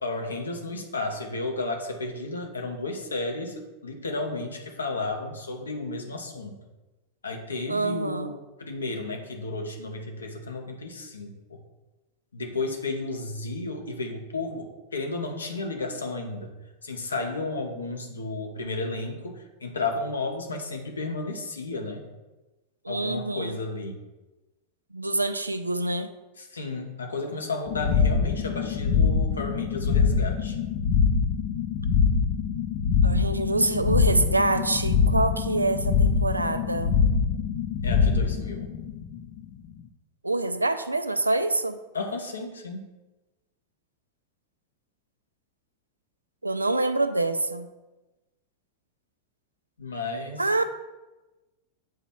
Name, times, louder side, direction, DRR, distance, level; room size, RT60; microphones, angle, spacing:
voice 1, 0.0-6.6 7.2-11.6 12.3-16.5 16.8-22.1 22.9-24.0 26.4-30.6 37.8-38.7 41.9-42.8 49.8-50.7, left 3 dB, 75° left, 3 dB, 0.9 m, -33 dB
voice 2, 7.7-8.3 22.8-23.6 24.9-26.1 33.0-37.1 40.2-41.8 46.4-47.7 50.4-50.7, right 2 dB, 80° right, 10 dB, 0.4 m, -26 dB
sound 1, 27.7-39.4, left 5 dB, 45° left, 0.5 m, -24 dB
7.4 x 3.0 x 5.6 m, 1.1 s
figure-of-eight pair, 90°, 0 cm